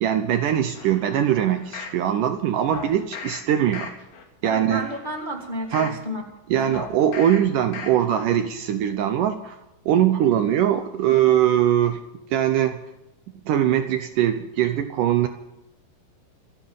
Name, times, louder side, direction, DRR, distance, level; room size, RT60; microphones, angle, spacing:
voice 1, 0.0-3.9 4.4-4.9 5.7-6.0 6.5-9.6 9.9-12.0 12.3-12.9 13.3-15.3, right 10 dB, 75° right, 8 dB, 2.0 m, -21 dB
sound 1, 0.7-2.0 2.7-3.4 3.7-4.2 4.7-6.0 6.7-7.4 7.7-8.2 8.6-8.7, left 5 dB, 60° left, 3.9 m, -38 dB
voice 2, 4.4-6.2 6.5-6.7, equal, 35° left, 1 dB, 0.7 m, -31 dB
26.5 x 9.4 x 5.5 m, 0.91 s
omnidirectional pair, 4.6 m